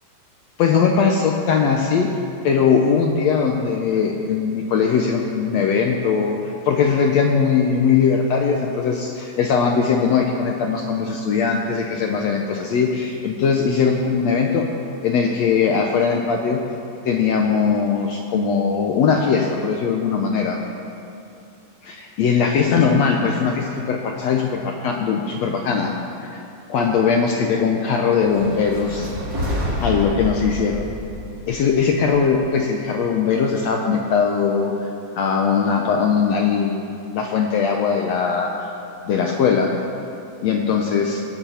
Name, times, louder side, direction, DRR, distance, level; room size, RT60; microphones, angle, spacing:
voice 1, 0.6-2.1 2.4-6.4 6.7-14.7 15.0-16.6 17.1-20.6 21.8-25.9 26.2-26.4 26.7-29.1 29.8-30.9 31.5-34.9 35.2-38.5 39.1-39.7 40.4-41.2, left 6 dB, 70° left, 1 dB, 1.6 m, -20 dB
sound 1, 28.2-32.5, equal, 25° right, 3.6 m, -28 dB
19.0 x 10.0 x 5.7 m, 2.6 s
omnidirectional pair, 4.0 m